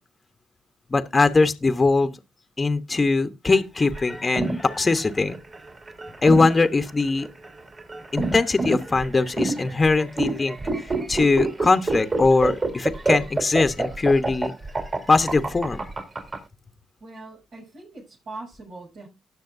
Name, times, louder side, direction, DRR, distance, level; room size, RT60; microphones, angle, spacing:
voice 1, 0.9-2.2 2.6-5.4 6.2-7.3 8.1-14.5 15.1-15.8, left 3 dB, 30° left, 1.0 m, -21 dB
sound 1, 3.9-16.4, right 3 dB, 40° right, 3.9 m, -27 dB
voice 2, 17.0-19.1, right 2 dB, 70° right, 7.2 m, -41 dB
19.0 x 6.4 x 2.6 m
supercardioid pair, 60°, 0 cm